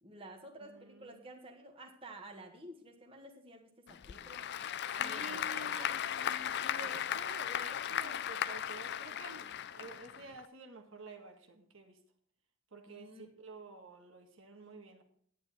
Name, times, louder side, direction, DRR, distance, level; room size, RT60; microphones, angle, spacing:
voice 1, 0.0-4.4 4.9-5.4 5.7-6.0 12.9-13.3, right 1 dB, 25° right, 2 dB, 1.5 m, -51 dB
voice 2, 0.6-1.2 5.0-12.0 12.7-13.1 13.4-15.0, right 3 dB, 60° right, 4 dB, 1.6 m, -51 dB
Applause / Crowd, 3.9-10.5, left 9 dB, 50° left, 0.4 m, -37 dB
10.5 x 9.3 x 4.2 m, 0.62 s
head